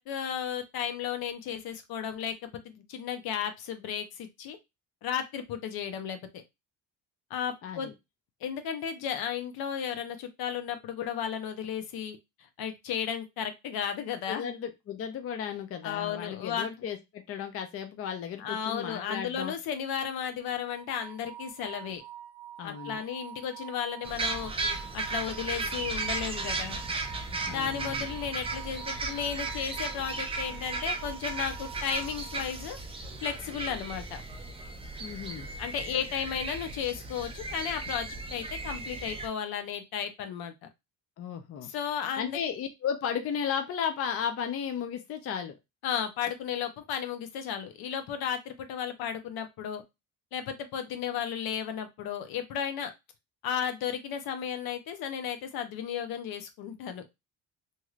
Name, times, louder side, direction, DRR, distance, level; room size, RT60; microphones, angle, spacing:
voice 1, 0.0-4.6 5.0-6.4 7.3-7.9 8.4-12.2 12.6-14.5 15.8-16.8 18.4-22.0 22.6-26.8 27.5-34.2 35.6-40.5 41.6-42.4 45.8-49.8 50.3-52.9 53.4-57.1, left 8 dB, 75° left, 7 dB, 0.7 m, -34 dB
voice 2, 7.6-7.9 14.3-19.5 22.6-23.0 27.5-28.1 35.0-35.5 41.2-41.7 42.2-45.5, left 8 dB, 40° left, 6 dB, 0.5 m, -34 dB
sound 1, 20.6-32.9, right 11 dB, 90° right, 0.5 m, -46 dB
sound 2, 24.0-39.3, right 3 dB, 15° right, 0.4 m, -36 dB
3.1 x 2.7 x 2.4 m, 0.22 s
cardioid pair, 150°, 37 cm